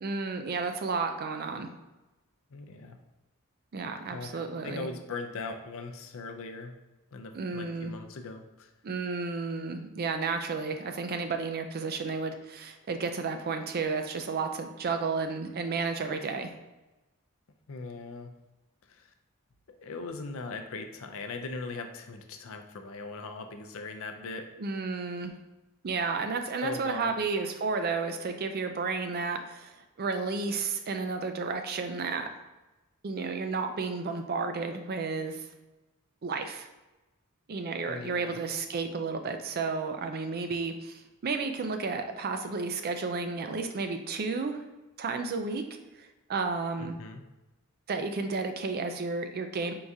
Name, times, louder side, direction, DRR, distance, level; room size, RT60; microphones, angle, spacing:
voice 1, 0.0-1.7 3.7-4.9 7.3-7.9 8.8-16.5 24.6-25.3 25.8-32.3 33.0-35.4 36.2-36.7 37.5-44.6 45.0-45.6 46.0-47.0 47.9-49.7, right 4 dB, 45° right, 7 dB, 0.4 m, -32 dB
voice 2, 2.5-3.0 4.1-6.7 7.1-8.7 17.7-18.3 18.9-19.1 19.8-24.5 26.6-27.1 37.9-38.4 46.8-47.2, left 3 dB, 65° left, 5 dB, 0.5 m, -39 dB
4.7 x 3.5 x 2.7 m, 1.1 s
head